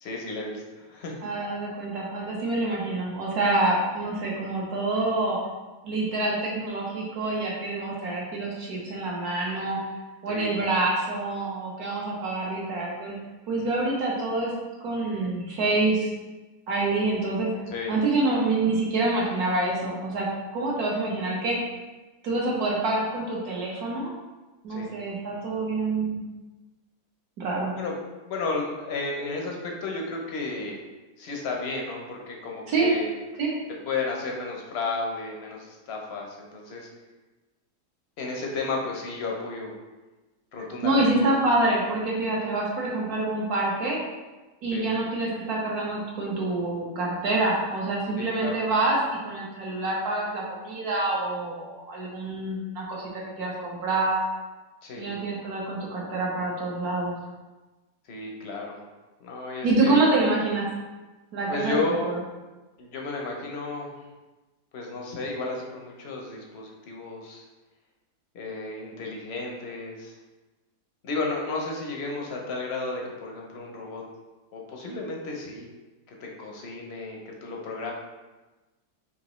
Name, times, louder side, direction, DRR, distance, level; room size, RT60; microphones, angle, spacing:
voice 1, 0.0-1.3 10.3-10.6 17.7-18.0 24.7-24.9 27.8-27.9 28.2-30.8 31.2-33.1 33.9-36.9 38.2-39.7 40.5-41.1 44.7-44.9 48.2-48.6 54.8-55.2 58.1-58.8 59.2-60.0 61.5-62.1 62.8-63.9 64.7-67.4 68.3-70.2 71.0-74.0 74.5-75.7 76.1-77.9, left 3 dB, 60° left, 0 dB, 0.7 m, -33 dB
voice 2, 1.2-5.4 5.8-9.8 10.2-13.2 13.5-14.5 14.8-16.1 16.7-20.3 20.5-21.6 22.2-24.1 24.6-26.2 27.4-27.7 32.7-32.9 33.4-33.5 40.8-44.0 44.6-54.2 55.0-57.1 59.6-60.7 61.3-62.2, right 2 dB, 65° right, -3 dB, 1.4 m, -26 dB
5.0 x 2.9 x 3.0 m, 1.2 s
omnidirectional pair, 1.8 m